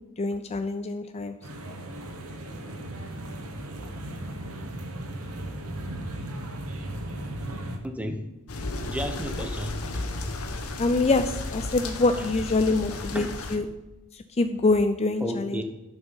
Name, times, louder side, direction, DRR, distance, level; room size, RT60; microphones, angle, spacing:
voice 1, 0.2-1.4 10.8-13.7 14.1-15.6, left 3 dB, 30° left, 9 dB, 0.4 m, -25 dB
sound 1, 1.4-7.8, right 1 dB, 75° right, 1.6 m, -36 dB
voice 2, 7.8-8.2 8.9-10.0 13.1-13.3 15.2-15.6, equal, 5° right, 6 dB, 0.9 m, -33 dB
sound 2, 8.5-13.6, left 2 dB, 75° left, 1.2 m, -33 dB
11.0 x 6.0 x 5.5 m, 1.1 s
head